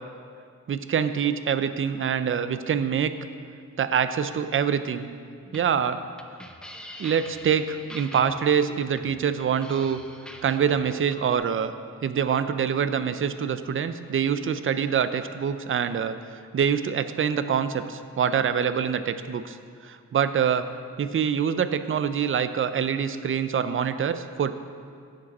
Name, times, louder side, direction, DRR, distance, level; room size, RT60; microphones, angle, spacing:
voice 1, 0.7-3.1 3.8-5.1 5.5-6.0 7.0-10.0 10.4-11.7 12.0-16.2 16.5-19.6 19.8-20.7 21.0-24.6, right 7 dB, 40° right, 11 dB, 0.5 m, -25 dB
sound 1, 5.4-11.4, equal, 5° left, 0.6 m, -45 dB
15.5 x 5.2 x 4.1 m, 2.2 s
wide cardioid pair, 105°, 33 cm